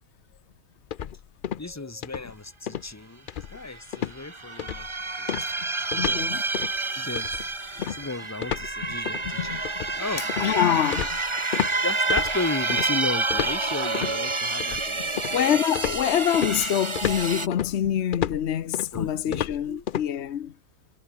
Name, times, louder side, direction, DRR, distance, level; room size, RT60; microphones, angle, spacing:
sound 1, 0.9-1.7 2.0-2.3 2.7-2.9 3.3-3.7 3.9-4.2 4.6-4.9 5.3-6.2 6.5-6.8 7.2-11.8 12.1-12.9 13.3-14.2 14.6-15.4 15.8-20.1, left 9 dB, 55° left, 0.7 m, -32 dB
voice 1, 1.6-4.9 5.2-5.5 5.9-6.5 6.9-9.6 9.9-10.4 11.8-15.5 18.9-19.8, left 3 dB, 15° left, 1.3 m, -35 dB
sound 2, 3.6-3.8 4.1-17.5, right 3 dB, 25° right, 1.4 m, -29 dB
voice 2, 6.0-6.4 10.4-11.2 15.3-20.5, left 10 dB, 70° left, 1.1 m, -25 dB
omnidirectional pair, 1.2 m